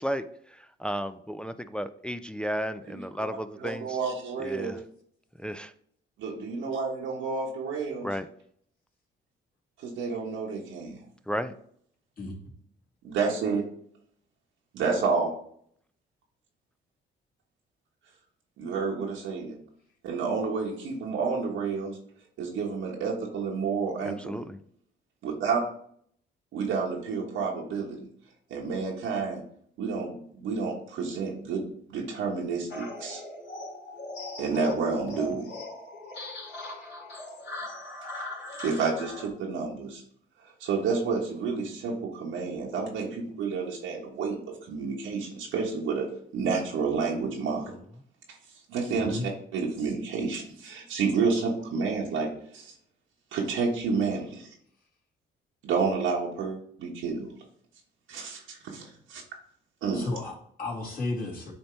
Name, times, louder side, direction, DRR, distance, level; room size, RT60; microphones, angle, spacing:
voice 1, 0.0-4.0 4.4-4.8 5.4-5.7 8.0-8.3 11.3-11.5 24.1-24.6 35.1-35.2 47.7-47.8, equal, 5° left, 10 dB, 0.3 m, -34 dB
voice 2, 3.6-4.7 6.2-8.1 9.8-11.0 13.0-13.6 14.7-15.3 18.6-19.5 20.0-21.9 22.4-24.4 25.2-25.6 26.5-28.1 28.5-29.4 29.8-31.6 31.9-33.2 34.4-35.5 38.6-40.0 40.6-44.4 44.7-46.1 46.3-47.7 48.7-52.7 53.3-54.5 55.6-57.3 58.1-59.2 59.8-60.1, right 5 dB, 85° right, -2 dB, 1.3 m, -30 dB
sound 1, 32.7-39.3, left 1 dB, 60° left, 2.5 m, -39 dB
voice 3, 59.9-61.5, left 2 dB, 45° left, -4 dB, 2.6 m, -33 dB
8.7 x 2.9 x 4.4 m, 0.64 s
cardioid pair, 90°, 20 cm